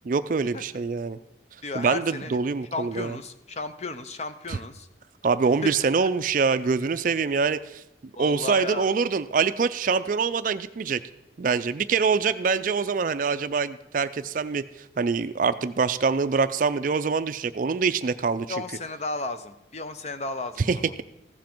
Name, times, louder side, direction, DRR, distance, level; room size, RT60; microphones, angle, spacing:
voice 1, 0.0-1.2 1.7-3.2 5.2-7.8 8.2-11.0 11.4-14.6 15.0-18.5 20.7-21.0, right 5 dB, 45° right, 13 dB, 0.4 m, -24 dB
voice 2, 1.6-2.4 2.7-4.9 5.6-5.7 8.1-8.9 18.5-20.9, left 3 dB, 35° left, 10 dB, 0.6 m, -34 dB
15.0 x 7.4 x 4.5 m, 0.87 s
head